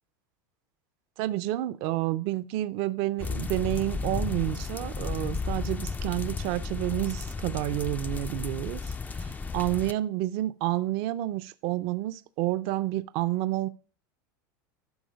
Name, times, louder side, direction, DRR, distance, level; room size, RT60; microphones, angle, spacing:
voice 1, 1.2-13.7, right 16 dB, 60° right, 0.5 m, -30 dB
sound 1, 3.2-9.9, left 4 dB, 15° left, 0.4 m, -33 dB
12.0 x 4.9 x 5.0 m
supercardioid pair, 110°, 11 cm